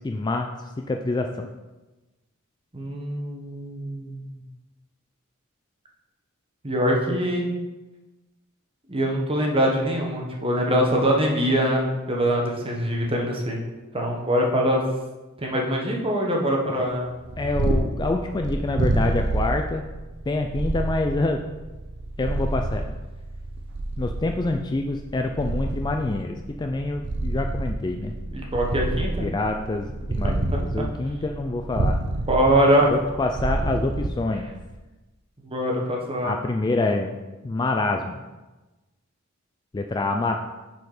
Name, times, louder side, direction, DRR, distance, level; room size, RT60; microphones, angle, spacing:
voice 1, 0.0-1.5 17.4-19.8 20.3-21.4 22.2-22.9 24.0-28.1 29.2-32.0 32.9-34.5 36.2-37.2 37.4-38.2 39.7-40.4, left 2 dB, 20° left, 4 dB, 0.3 m, -26 dB
voice 2, 2.7-4.3 6.6-7.5 8.9-13.6 13.9-14.8 15.4-17.1 28.3-29.3 32.3-32.9 35.5-36.3, equal, 25° right, 0 dB, 1.1 m, -23 dB
Purr, 17.1-34.8, right 2 dB, 55° right, 0.6 m, -28 dB
6.7 x 4.3 x 4.9 m, 1.1 s
head